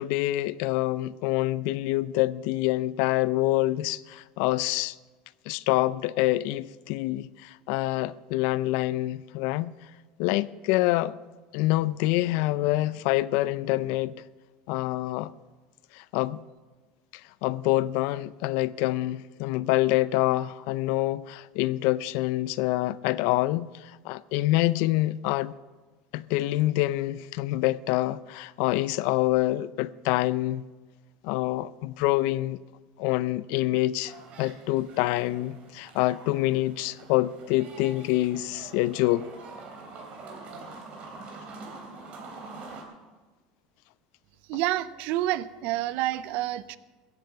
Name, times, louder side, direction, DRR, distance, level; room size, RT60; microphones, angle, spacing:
voice 1, 0.0-4.9 5.5-9.7 10.2-11.2 11.5-14.1 14.7-15.3 16.0-16.4 17.4-23.7 24.0-25.5 26.1-30.6 31.2-32.6 33.0-34.1 34.4-39.3, left 17 dB, 70° left, 0.5 m, -26 dB
sound 1, 34.1-42.8, right 3 dB, 45° right, 3.2 m, -45 dB
voice 2, 44.5-46.8, right 14 dB, 65° right, 0.6 m, -28 dB
15.0 x 8.2 x 7.0 m
supercardioid pair, 110°, 3 cm